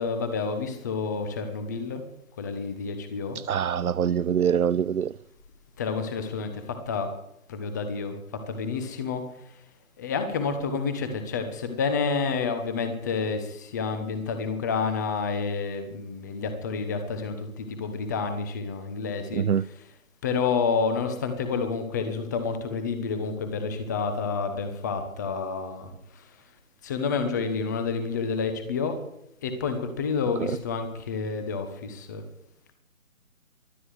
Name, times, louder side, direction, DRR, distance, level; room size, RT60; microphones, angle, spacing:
voice 1, 0.0-2.0 2.4-3.4 5.8-7.1 7.5-9.3 10.0-19.9 20.2-26.3 26.8-29.0 29.4-32.2, left 5 dB, 15° left, 1.1 m, -29 dB
voice 2, 3.5-5.1 19.4-19.6, right 8 dB, 90° right, 0.6 m, -24 dB
23.5 x 9.6 x 4.8 m
figure-of-eight pair, 160°, 42 cm